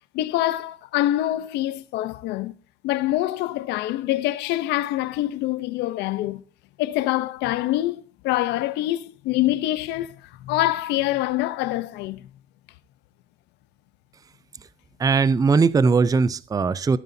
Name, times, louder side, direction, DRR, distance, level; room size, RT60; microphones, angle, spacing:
voice 1, 0.1-2.5 2.8-6.4 6.8-12.3, left 15 dB, 90° left, 0.8 m, -25 dB
voice 2, 15.0-17.0, right 4 dB, 20° right, 0.6 m, -19 dB
17.5 x 9.3 x 2.7 m
cardioid pair, 110°, 17 cm